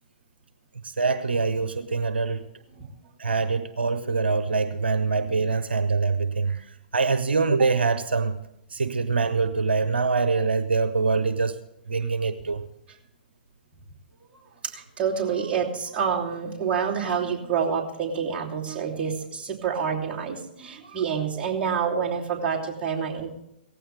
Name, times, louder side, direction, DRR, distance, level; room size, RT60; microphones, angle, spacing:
voice 1, 0.8-2.4 3.2-6.6 6.9-8.4 8.7-11.6 11.9-12.6, right 4 dB, 80° right, 0.9 m, -24 dB
voice 2, 14.6-23.3, right 7 dB, 20° right, 3.0 m, -27 dB
17.5 x 15.5 x 3.4 m
figure-of-eight pair, 120°, 6 cm